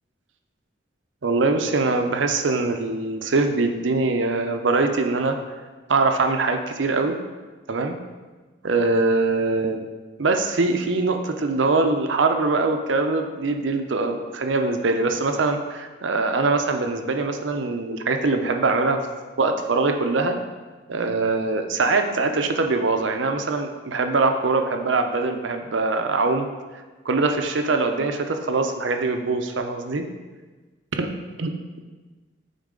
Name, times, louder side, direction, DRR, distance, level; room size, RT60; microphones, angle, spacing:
voice 1, 1.2-5.4 5.9-7.2 7.7-8.0 8.6-9.8 10.2-19.0 19.4-20.4 20.9-26.5 27.1-30.1 31.0-31.1 31.4-31.5, right 3 dB, 85° right, 6 dB, 0.6 m, -22 dB
8.9 x 4.0 x 3.8 m, 1.3 s
head